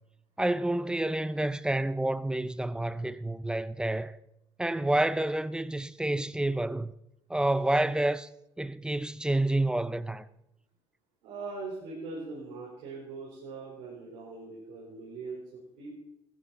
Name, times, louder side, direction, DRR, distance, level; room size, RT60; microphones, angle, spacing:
voice 1, 0.4-4.2 4.6-6.9 7.3-8.3 8.6-10.2, right 1 dB, 5° right, 0.6 m, -29 dB
voice 2, 11.2-16.0, right 3 dB, 85° right, 5.0 m, -41 dB
15.0 x 13.5 x 4.3 m
cardioid pair, 95°, 11 cm